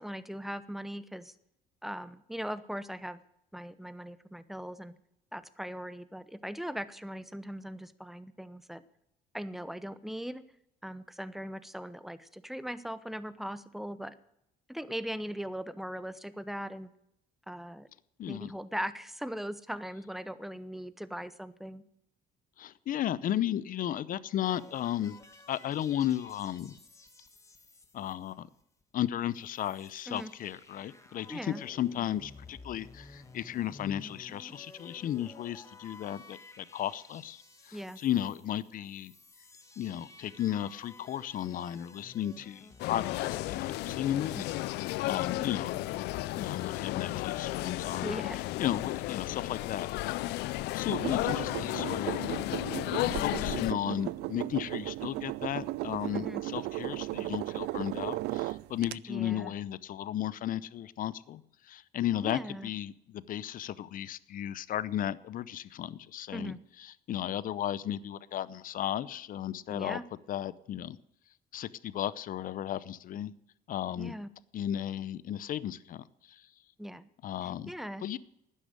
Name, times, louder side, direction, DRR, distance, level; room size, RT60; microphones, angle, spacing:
voice 1, 0.0-1.3 1.8-3.2 3.5-4.9 5.3-8.8 9.3-10.4 10.8-14.1 14.7-16.9 17.5-17.9 18.2-21.8 30.1-30.3 31.3-31.6 37.7-38.0 44.3-44.4 48.0-48.4 56.1-56.4 59.1-59.5 62.2-62.7 66.3-66.6 69.7-70.0 74.0-74.3 76.8-77.1 77.7-78.2, equal, ahead, 14 dB, 0.8 m, -39 dB
voice 2, 18.2-18.5 22.6-25.2 25.5-26.7 27.9-28.5 28.9-39.1 39.8-44.5 45.0-46.0 46.4-48.2 48.6-49.9 50.7-52.2 52.9-70.0 70.3-71.0 71.5-73.3 73.7-74.1 74.5-76.4 77.2-77.7 78.0-78.2, left 11 dB, 55° left, 18 dB, 0.7 m, -34 dB
sound 1, 24.4-28.8 29.1-29.2 29.4-44.3, left 2 dB, 20° left, 1.7 m, -53 dB
sound 2, 42.8-53.7, left 17 dB, 85° left, 0.5 m, -33 dB
sound 3, 50.9-59.0, right 19 dB, 85° right, 0.4 m, -36 dB
12.0 x 9.9 x 8.1 m, 0.79 s
cardioid pair, 110°, 17 cm